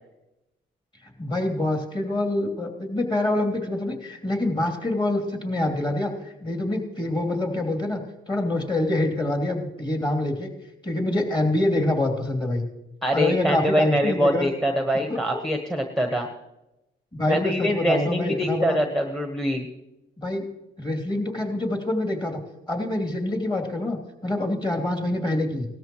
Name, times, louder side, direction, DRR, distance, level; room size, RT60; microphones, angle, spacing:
voice 1, 1.2-8.0 8.3-10.5 10.8-12.6 13.1-14.5 15.1-15.4 17.1-18.8 20.2-20.4 20.8-22.4 22.7-25.7, left 1 dB, 20° left, 2 dB, 3.0 m, -26 dB
voice 2, 13.0-16.3 17.3-19.7, equal, ahead, 4 dB, 1.2 m, -24 dB
17.5 x 13.5 x 3.1 m, 0.95 s
cardioid pair, 90°, 20 cm